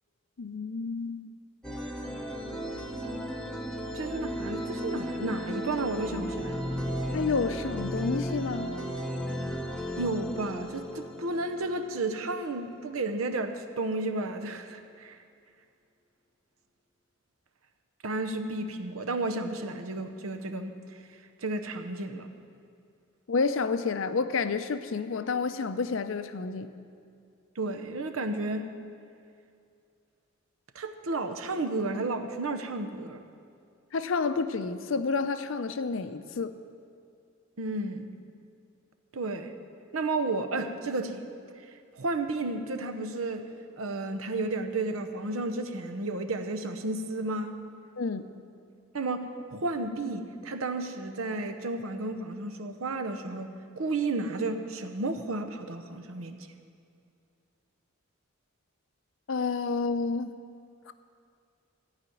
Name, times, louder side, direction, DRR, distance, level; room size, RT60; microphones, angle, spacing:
voice 1, 0.4-1.3 7.1-8.8 23.3-26.7 33.9-36.5 48.0-48.3 59.3-60.3 60.9-61.0, left 4 dB, 65° left, 11 dB, 0.5 m, -30 dB
sound 1, 1.6-13.0, equal, 5° left, 0.8 m, -35 dB
voice 2, 3.9-6.6 10.0-15.2 18.0-20.8 21.4-22.3 27.6-28.7 30.7-33.2 37.6-38.1 39.1-39.5 39.9-41.3 41.9-43.5 43.8-47.6 48.9-56.4, right 2 dB, 85° right, 7 dB, 0.8 m, -32 dB
14.5 x 5.0 x 9.2 m, 2.4 s
head